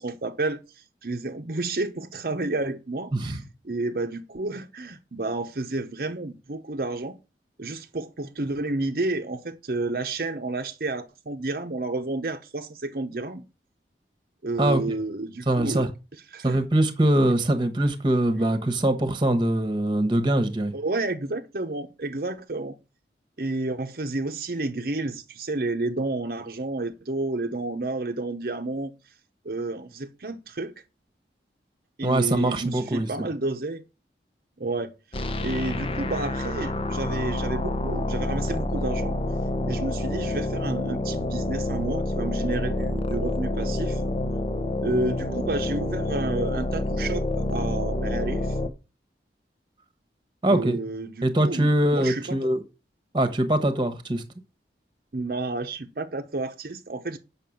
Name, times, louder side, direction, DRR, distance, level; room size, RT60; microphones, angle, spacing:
voice 1, 0.0-3.4 3.6-7.2 7.6-13.4 14.4-15.9 16.3-16.6 20.7-22.8 23.4-28.9 29.4-30.7 32.0-33.8 34.6-34.9 35.4-39.1 39.7-44.0 44.8-48.6 50.5-52.5 55.1-57.2, right 2 dB, 55° right, 0.8 m, -30 dB
voice 2, 15.5-15.9 16.4-20.7 32.0-33.1 50.4-50.8 51.2-52.6 53.1-54.2, right 1 dB, 25° right, 1.1 m, -22 dB
sound 1, 35.1-48.7, left 1 dB, 30° left, 0.7 m, -28 dB
7.6 x 5.8 x 7.1 m
head